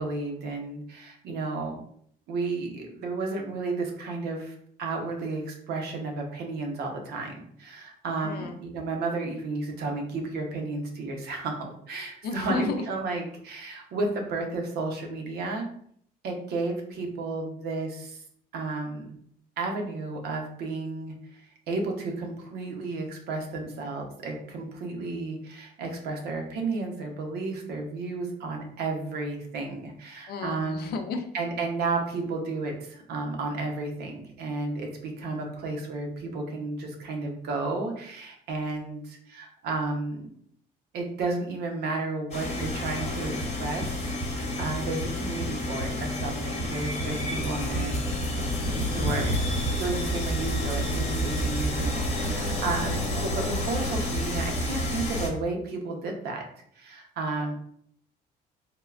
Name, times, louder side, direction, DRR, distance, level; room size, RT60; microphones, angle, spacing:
voice 1, 0.0-1.8 2.3-15.7 16.2-18.2 18.5-19.2 19.6-30.9 31.3-40.3 40.9-48.0 48.9-57.5, right 3 dB, 70° right, 2 dB, 0.8 m, -32 dB
voice 2, 12.2-12.8 30.3-31.2, left 4 dB, 70° left, 6 dB, 0.5 m, -32 dB
sound 1, 42.3-55.3, equal, 40° left, 0.8 m, -29 dB
3.5 x 2.2 x 2.3 m, 0.65 s
cardioid pair, 110°, 17 cm